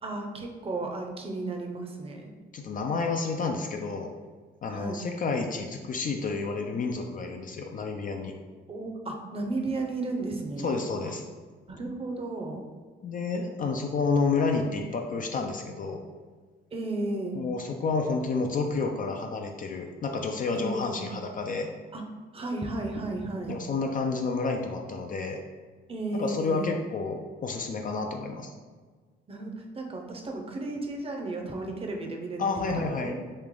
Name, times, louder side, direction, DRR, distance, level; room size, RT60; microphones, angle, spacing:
voice 1, 0.0-2.3 4.7-5.1 8.7-10.7 11.7-12.6 16.7-17.4 20.5-21.1 21.9-22.0 22.3-23.6 25.9-26.6 29.3-33.1, right 2 dB, 30° right, 2 dB, 0.7 m, -34 dB
voice 2, 2.5-4.1 4.6-8.3 10.6-11.2 13.0-16.0 17.4-21.7 23.5-25.4 26.1-28.5 32.4-33.1, left 4 dB, 45° left, 3 dB, 0.4 m, -30 dB
3.2 x 2.9 x 3.7 m, 1.5 s
cardioid pair, 90°, 20 cm